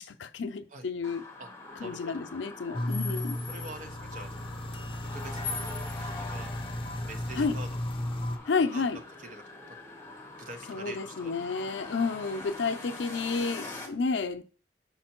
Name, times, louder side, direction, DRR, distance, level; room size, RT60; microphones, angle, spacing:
voice 1, 0.0-1.2 1.8-3.4 7.3-7.6 8.5-9.0 10.7-14.4, left 4 dB, 85° left, 0.5 m, -31 dB
sound 1, 1.0-13.9, left 3 dB, 15° left, 1.0 m, -43 dB
voice 2, 1.8-2.2 3.5-4.6 5.1-6.5 7.0-7.8 8.6-8.9 9.2-9.4 9.7-9.8 10.4-11.4 11.8-11.9, right 2 dB, 45° right, 0.9 m, -45 dB
sound 2, 2.7-8.4, left 1 dB, 30° left, 0.7 m, -35 dB
5.7 x 4.4 x 4.4 m
head